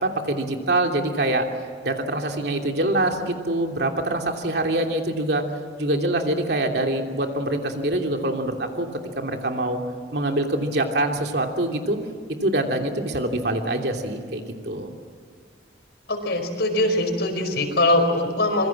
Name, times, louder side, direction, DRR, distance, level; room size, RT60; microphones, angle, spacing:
voice 1, 0.0-1.5 1.8-5.4 5.8-8.9 9.1-9.8 10.1-12.0 12.4-14.9, right 1 dB, 60° right, 3 dB, 2.9 m, -24 dB
voice 2, 16.1-18.7, left 1 dB, 65° left, 5 dB, 5.0 m, -22 dB
26.0 x 23.0 x 7.6 m, 2.1 s
head